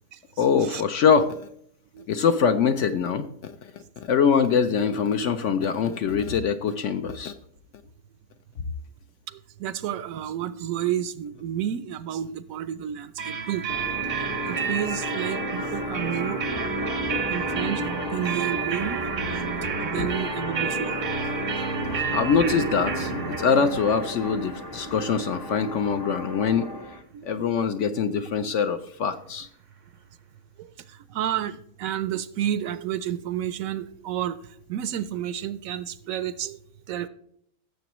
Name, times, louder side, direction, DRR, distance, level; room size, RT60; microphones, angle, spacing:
voice 1, 0.4-1.5 2.1-7.3 20.0-20.1 22.1-26.7 27.2-29.5, left 6 dB, 65° left, 9 dB, 0.8 m, -23 dB
voice 2, 9.3-13.8 14.2-16.8 17.3-19.3 19.6-21.1 27.1-27.3 27.6-27.7 30.6-36.6 36.9-37.1, right 11 dB, 70° right, 14 dB, 0.9 m, -31 dB
sound 1, 13.2-26.8, right 6 dB, 45° right, 0.6 m, -32 dB
sound 2, 13.7-27.0, left 1 dB, 25° left, 0.5 m, -33 dB
16.0 x 7.0 x 3.0 m, 0.68 s
omnidirectional pair, 1.6 m